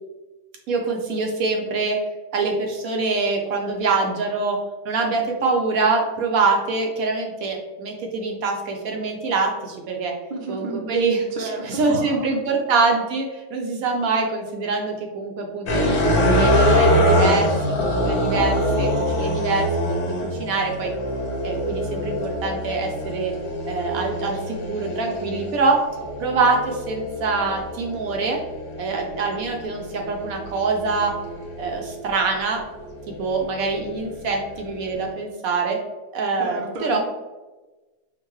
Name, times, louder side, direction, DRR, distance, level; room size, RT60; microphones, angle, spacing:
voice 1, 0.7-2.0 2.3-4.6 4.8-10.1 10.5-17.5 17.8-20.9 21.4-23.3 23.7-25.9 26.2-28.4 28.8-31.2 31.6-32.6 33.1-35.8 36.1-37.0, right 4 dB, 70° right, 1 dB, 0.9 m, -24 dB
voice 2, 10.3-10.9 11.3-12.3 36.4-37.0, right 2 dB, 55° right, 0 dB, 0.5 m, -31 dB
sound 1, 15.7-32.0 32.6-35.1, equal, 90° left, 1.4 m, -24 dB
5.3 x 2.2 x 3.0 m, 1.2 s
omnidirectional pair, 1.7 m